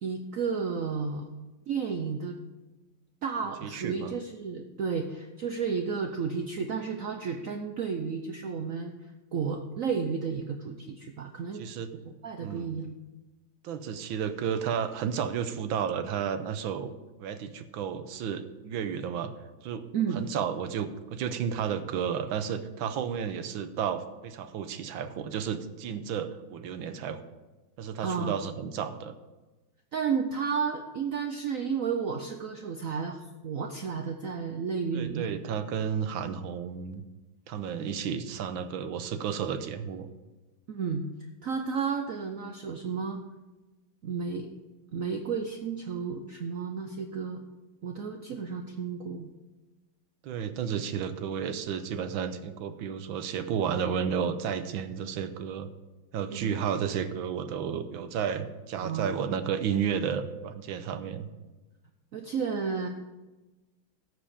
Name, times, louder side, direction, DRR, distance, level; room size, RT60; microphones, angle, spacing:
voice 1, 0.0-1.3 1.7-2.4 3.2-8.9 9.3-11.6 11.9-12.9 19.9-20.2 28.0-28.4 29.9-35.4 40.7-41.0 41.4-43.2 44.0-44.5 44.9-47.4 47.8-49.3 56.3-56.5 58.8-59.1 62.1-62.9, right 6 dB, 60° right, 5 dB, 0.9 m, -32 dB
voice 2, 3.6-4.1 11.6-11.9 12.4-12.7 13.6-16.9 17.2-19.3 19.6-19.9 20.1-27.2 27.8-29.1 34.9-37.0 37.5-40.1 50.2-55.7 56.1-61.3, right 7 dB, 85° right, 10 dB, 1.6 m, -32 dB
12.5 x 8.0 x 4.9 m, 1.1 s
omnidirectional pair, 2.1 m